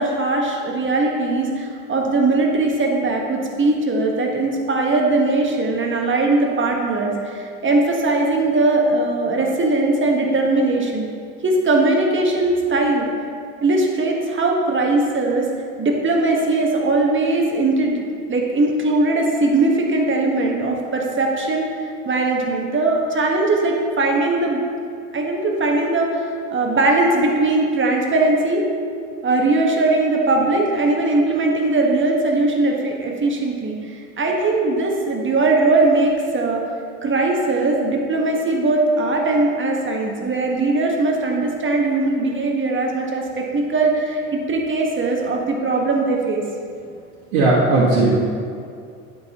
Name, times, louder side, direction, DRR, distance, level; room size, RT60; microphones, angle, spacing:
voice 1, 0.0-11.1 11.4-13.1 13.6-15.5 15.8-18.0 18.3-21.7 22.0-24.6 25.1-28.6 29.2-36.6 37.0-44.2 44.5-46.4, right 2 dB, 30° right, 0 dB, 1.3 m, -20 dB
voice 2, 47.3-48.1, right 2 dB, 70° right, -7 dB, 1.5 m, -16 dB
11.0 x 5.7 x 2.9 m, 2.3 s
hypercardioid pair, 70°, 40 cm